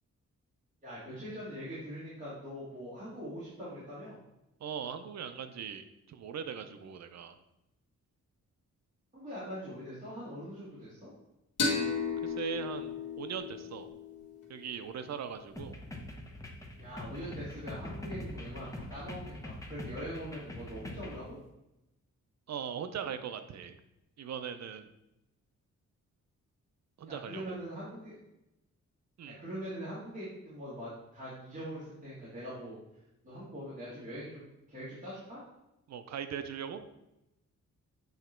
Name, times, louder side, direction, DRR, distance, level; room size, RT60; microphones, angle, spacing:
voice 1, 0.8-4.2 9.1-11.1 16.8-21.4 27.0-28.2 29.2-35.4, equal, 25° right, -11 dB, 2.1 m, -42 dB
voice 2, 4.6-7.4 12.2-13.9 14.5-15.8 22.5-23.7 24.2-24.9 27.0-27.6 29.2-29.4 35.9-36.8, right 8 dB, 60° right, 9 dB, 0.5 m, -40 dB
sound 1, 11.6-15.0, left 4 dB, 75° left, 1.7 m, -35 dB
sound 2, 15.6-21.2, left 1 dB, 10° left, 0.8 m, -43 dB
7.9 x 3.0 x 4.4 m, 0.91 s
wide cardioid pair, 140°, 30 cm